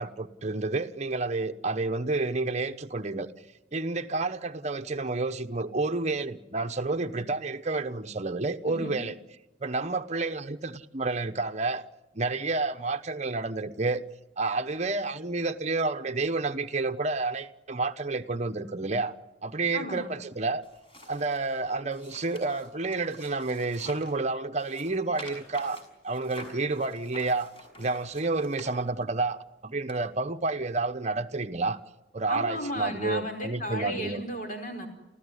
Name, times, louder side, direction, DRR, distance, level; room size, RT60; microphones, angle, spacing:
voice 1, 0.0-3.3 3.7-9.1 9.6-11.8 12.1-14.0 14.4-19.1 19.4-20.6 21.1-27.5 27.8-29.4 29.6-31.8 32.1-34.2, right 3 dB, 40° right, 1.0 m, -30 dB
voice 2, 8.7-9.0 19.7-20.1 32.3-34.9, equal, 45° left, 5.0 m, -34 dB
sound 1, 20.6-24.2 24.6-29.2 29.9-30.0, left 1 dB, 30° left, 6.4 m, -48 dB
30.0 x 14.5 x 9.7 m
head